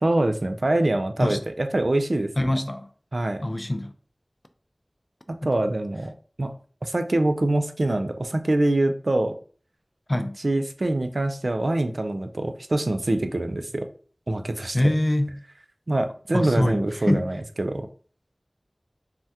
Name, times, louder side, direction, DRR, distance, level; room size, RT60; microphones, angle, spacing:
voice 1, 0.0-2.6 3.1-3.4 5.3-6.1 6.4-6.5 6.8-9.3 10.4-13.9 14.3-14.9 15.9-17.9, right 2 dB, 70° right, 0.3 m, -24 dB
voice 2, 2.4-2.9 3.4-3.9 5.4-5.5 10.1-10.4 14.7-15.4 16.3-17.2, left 1 dB, 40° left, 0.3 m, -24 dB
3.4 x 2.1 x 2.7 m
wide cardioid pair, 40°, 0 cm